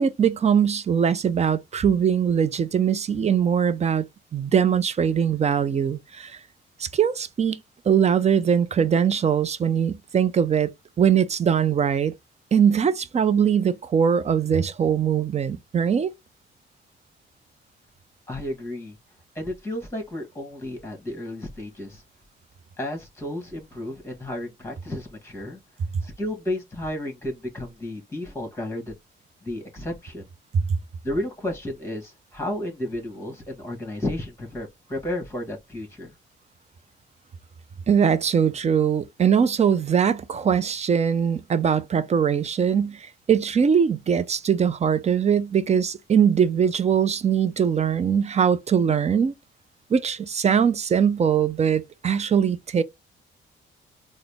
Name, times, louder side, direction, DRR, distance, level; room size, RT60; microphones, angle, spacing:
voice 1, 0.0-4.0 4.3-6.4 6.8-7.6 7.9-12.1 12.5-16.1 30.5-30.6 37.9-49.3 49.9-52.8, right 7 dB, 35° right, 0.5 m, -21 dB
voice 2, 18.3-19.0 19.3-22.0 22.8-25.6 26.0-29.0 29.4-30.2 31.0-36.1, left 1 dB, 15° left, 1.5 m, -32 dB
3.9 x 2.1 x 3.4 m
cardioid pair, 90°, 20 cm